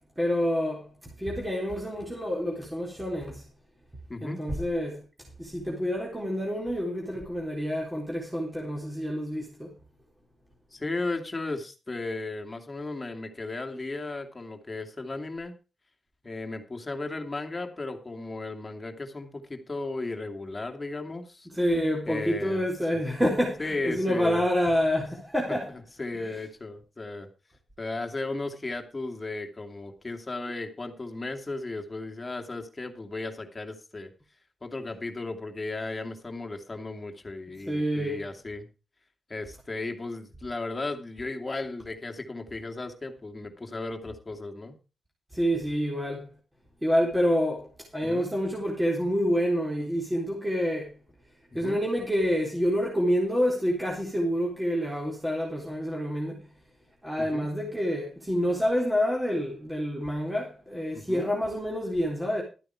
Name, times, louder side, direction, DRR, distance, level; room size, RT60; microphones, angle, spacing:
voice 1, 0.2-3.4 4.2-5.0 5.4-9.7 21.5-25.7 26.1-26.3 37.7-38.2 45.3-46.3 46.8-50.9 51.5-56.4 57.0-62.4, equal, 10° right, 3.8 m, -28 dB
voice 2, 4.1-4.4 10.7-15.5 16.2-21.5 22.1-22.6 23.6-24.4 26.0-27.3 27.8-34.1 34.6-38.7 39.3-44.7 48.0-48.3 51.6-51.8 57.2-57.5 60.9-61.3, left 2 dB, 25° left, 2.6 m, -35 dB
13.0 x 9.3 x 4.8 m
wide cardioid pair, 105°, 0 cm